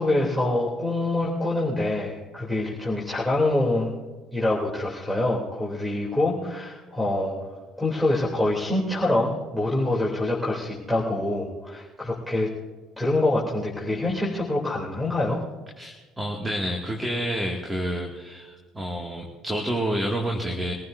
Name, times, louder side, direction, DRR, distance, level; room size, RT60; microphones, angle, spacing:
voice 1, 0.0-3.9 4.3-7.3 7.8-12.5 13.0-15.4, left 2 dB, 5° right, -3 dB, 3.2 m, -25 dB
voice 2, 15.8-20.7, right 1 dB, 20° right, 1 dB, 2.3 m, -29 dB
24.5 x 15.5 x 2.7 m, 1.4 s
hypercardioid pair, 70°, 0 cm